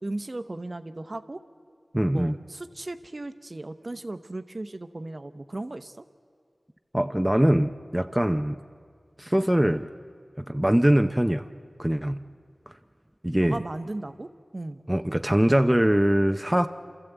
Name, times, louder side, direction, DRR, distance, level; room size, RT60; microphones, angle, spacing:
voice 1, 0.0-1.4 2.1-5.9 13.4-14.8, right 2 dB, 45° right, 10 dB, 0.8 m, -36 dB
voice 2, 1.9-2.3 6.9-8.6 9.2-9.9 10.4-11.5 11.8-12.2 13.2-13.6 14.9-16.7, right 1 dB, 10° right, 7 dB, 0.6 m, -22 dB
28.5 x 13.5 x 8.1 m, 2.1 s
wide cardioid pair, 60°, 0 cm